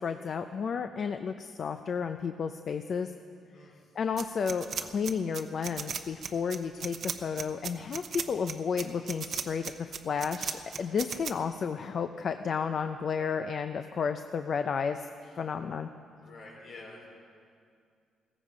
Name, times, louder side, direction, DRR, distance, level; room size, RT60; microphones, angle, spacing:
voice 1, 0.0-3.1 4.0-15.1 15.4-15.9, left 6 dB, 50° left, 8 dB, 0.5 m, -32 dB
voice 2, 3.5-3.9 15.2-15.4 16.2-17.1, left 2 dB, 75° left, -3 dB, 4.5 m, -49 dB
sound 1, 4.2-11.3, right 7 dB, 55° right, 0.8 m, -36 dB
16.0 x 15.0 x 5.0 m, 2.3 s
cardioid pair, 90°, 0 cm